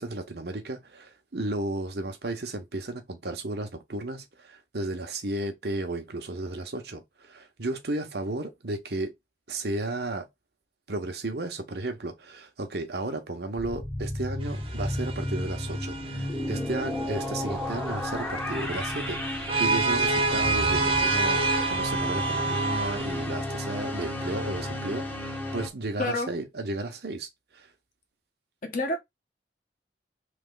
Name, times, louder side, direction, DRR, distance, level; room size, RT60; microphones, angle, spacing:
voice 1, 0.0-9.1 9.5-10.3 10.9-21.4 21.7-27.7, right 2 dB, 65° right, 1.0 m, -34 dB
sound 1, 13.6-25.7, left 1 dB, 10° left, 0.8 m, -32 dB
sound 2, 14.4-23.3, right 3 dB, 35° right, 0.7 m, -29 dB
voice 2, 26.0-26.3 28.6-29.0, left 1 dB, 50° left, 1.0 m, -28 dB
3.4 x 3.1 x 3.8 m
head